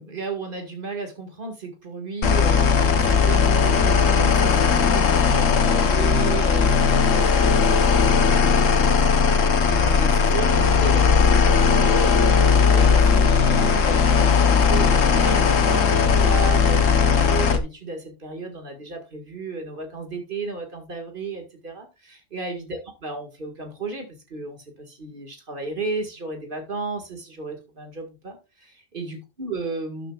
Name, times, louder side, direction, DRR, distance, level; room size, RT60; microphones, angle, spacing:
voice 1, 0.0-30.1, right 3 dB, 45° right, 5 dB, 2.2 m, -34 dB
sound 1, 2.2-17.6, left 5 dB, 85° left, 1.5 m, -18 dB
12.5 x 9.7 x 2.4 m, 0.28 s
omnidirectional pair, 1.3 m